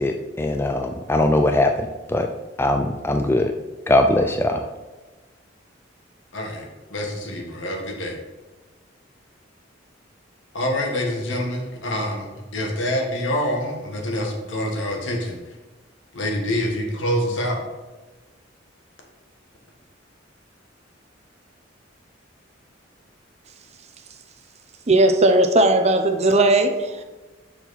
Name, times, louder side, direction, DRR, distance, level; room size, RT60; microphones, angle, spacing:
voice 1, 0.0-2.3 2.6-3.5 3.9-4.7, left 1 dB, 15° left, 5 dB, 0.3 m, -21 dB
voice 2, 6.3-8.2 10.5-15.6 16.1-17.7, left 1 dB, 75° left, 1 dB, 1.6 m, -26 dB
voice 3, 24.9-27.0, right 2 dB, 35° right, 6 dB, 0.7 m, -17 dB
6.8 x 6.0 x 4.1 m, 1.2 s
head